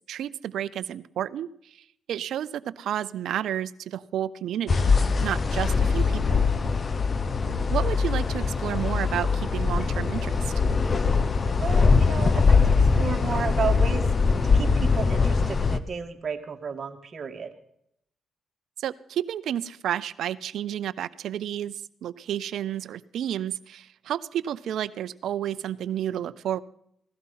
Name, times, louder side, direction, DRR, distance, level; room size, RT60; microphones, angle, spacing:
voice 1, 0.1-6.5 7.7-10.5 18.8-26.6, right 10 dB, 75° right, 18 dB, 0.6 m, -31 dB
sound 1, 4.7-15.8, left 4 dB, 45° left, 1.0 m, -22 dB
voice 2, 11.6-14.1 14.5-17.5, right 6 dB, 50° right, 4 dB, 1.8 m, -33 dB
16.5 x 13.0 x 5.7 m, 0.72 s
supercardioid pair, 60°, 0 cm